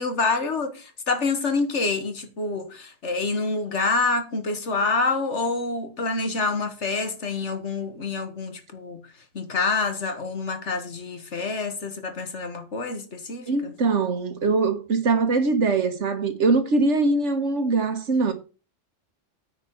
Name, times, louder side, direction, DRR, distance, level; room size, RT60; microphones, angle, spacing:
voice 1, 0.0-9.0 9.3-13.7, left 3 dB, 65° left, 2.0 m, -27 dB
voice 2, 13.5-18.3, right 3 dB, 65° right, 1.7 m, -22 dB
9.4 x 5.0 x 7.1 m
omnidirectional pair, 1.3 m